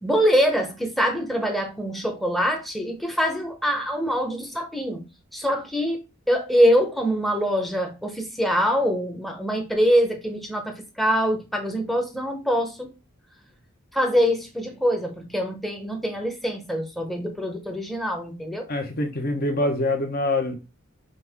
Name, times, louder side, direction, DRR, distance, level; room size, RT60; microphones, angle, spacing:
voice 1, 0.0-5.0 5.3-6.0 6.3-12.9 13.9-18.6, equal, ahead, 0.8 m, -24 dB
voice 2, 18.7-20.6, left 2 dB, 45° left, 0.9 m, -25 dB
5.4 x 2.6 x 3.5 m
head